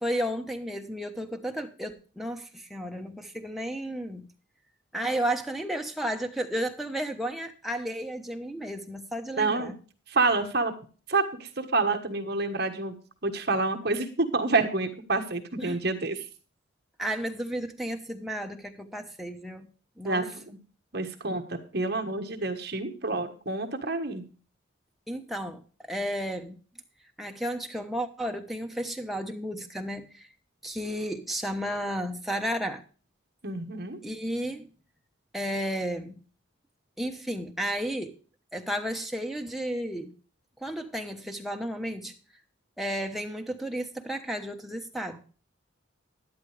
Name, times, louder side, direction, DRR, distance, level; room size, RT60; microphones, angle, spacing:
voice 1, 0.0-4.3 4.9-9.7 15.6-15.8 17.0-19.7 20.0-20.3 25.1-26.6 27.2-30.3 30.6-32.8 34.0-34.7 35.3-36.2 37.0-38.1 38.5-40.1 40.6-42.1 42.8-45.2, equal, ahead, 1.1 m, -33 dB
voice 2, 9.4-9.7 10.1-10.7 11.1-12.9 13.2-16.3 20.0-20.6 20.9-24.2 33.4-34.0, right 3 dB, 50° right, 1.4 m, -28 dB
12.0 x 10.5 x 3.3 m
head